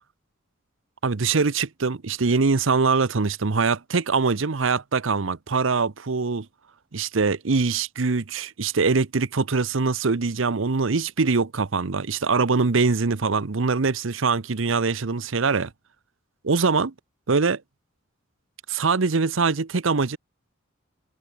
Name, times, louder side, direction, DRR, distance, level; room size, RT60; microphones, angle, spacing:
voice 1, 1.0-6.5 6.9-15.7 16.4-16.9 17.3-17.6 18.7-20.2, right 4 dB, 70° right, 0.8 m, -23 dB
head